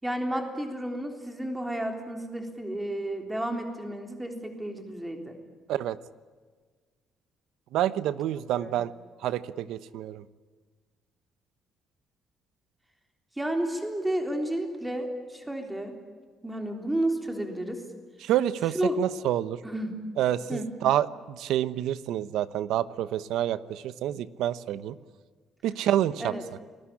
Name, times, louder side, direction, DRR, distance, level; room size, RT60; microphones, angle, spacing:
voice 1, 0.0-5.4 8.6-8.8 13.4-16.0 16.4-17.8 18.7-19.0 19.6-20.0 20.5-20.7 26.2-26.4, right 1 dB, 5° right, 4 dB, 3.7 m, -31 dB
voice 2, 7.7-8.9 9.2-10.2 18.2-19.6 20.2-25.0 25.6-26.3, right 12 dB, 80° right, 15 dB, 1.0 m, -28 dB
29.0 x 20.5 x 8.7 m, 1.5 s
cardioid pair, 155°, 0 cm